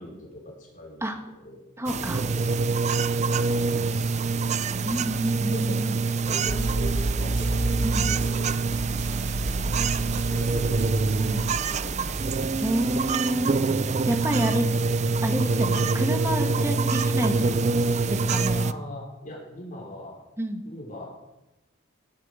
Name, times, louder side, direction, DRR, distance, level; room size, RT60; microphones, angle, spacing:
voice 1, 0.0-1.1 1.3-1.6 1.9-5.8 6.2-7.7 7.9-8.5 9.4-9.5 9.8-11.0 11.3-12.8 16.4-16.8 18.5-20.2 20.7-21.0, left 1 dB, 40° left, -3 dB, 5.2 m, -42 dB
voice 2, 1.8-2.2 4.8-6.0 7.8-8.1 11.2-11.4 12.6-13.5 14.1-14.7 15.2-17.6 18.1-18.6 20.4-20.6, right 1 dB, 15° right, 5 dB, 1.9 m, -29 dB
sound 1, 1.9-18.7, right 4 dB, 35° right, 0.5 m, -25 dB
sound 2, 6.5-13.1, right 1 dB, 60° right, 1.3 m, -31 dB
18.5 x 12.0 x 5.3 m, 0.96 s
head